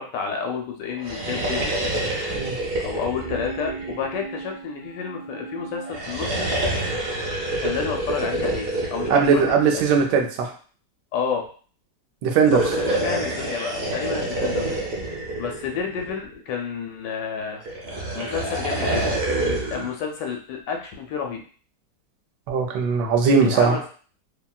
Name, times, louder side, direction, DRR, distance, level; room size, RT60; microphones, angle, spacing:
voice 1, 0.0-1.7 2.8-6.5 7.6-9.8 11.1-11.5 12.5-14.9 15.4-17.6 18.1-19.0 19.7-21.4 23.5-23.9, left 6 dB, 85° left, 2 dB, 1.2 m, -30 dB
sound 1, 0.9-4.5 5.8-10.2 12.3-16.3 17.6-19.9, right 1 dB, 45° right, 0.8 m, -27 dB
sound 2, 3.1-6.9 7.2-7.3, right 4 dB, 55° left, 1.0 m, -38 dB
voice 2, 9.1-10.5 12.2-12.6 22.5-23.8, right 5 dB, 85° right, 4 dB, 1.2 m, -19 dB
2.8 x 2.7 x 2.3 m, 0.41 s
omnidirectional pair, 1.8 m